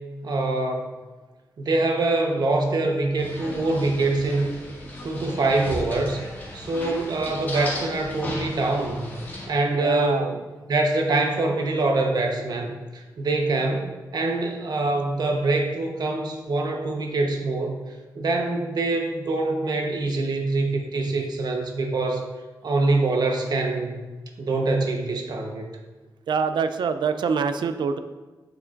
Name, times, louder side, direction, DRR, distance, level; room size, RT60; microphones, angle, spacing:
voice 1, 0.2-0.9 1.6-4.6 5.0-6.2 6.5-9.1 9.5-10.3 10.7-17.7 18.1-22.3 22.6-24.0 24.4-25.7, right 2 dB, 65° right, 2 dB, 1.0 m, -24 dB
sound 1, 3.2-9.5, left 1 dB, 25° left, 2.2 m, -36 dB
voice 2, 6.7-7.1 9.7-10.4 26.3-28.0, right 5 dB, 90° right, 10 dB, 0.4 m, -25 dB
8.2 x 6.9 x 2.5 m, 1.3 s
wide cardioid pair, 115°, 8 cm